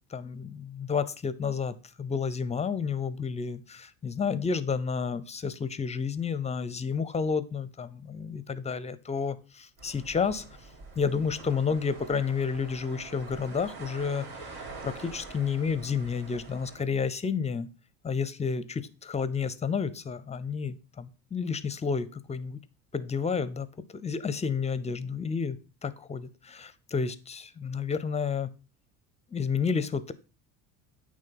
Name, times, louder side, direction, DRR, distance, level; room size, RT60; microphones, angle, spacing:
voice 1, 0.1-10.4 11.0-17.7 18.0-22.6 22.9-23.7 23.9-25.6 25.8-28.5 29.3-30.1, left 5 dB, 15° left, 0.6 m, -31 dB
sound 1, 9.8-16.8, right 3 dB, 65° right, 3.3 m, -45 dB
8.9 x 3.2 x 5.8 m
supercardioid pair, 90°, 39 cm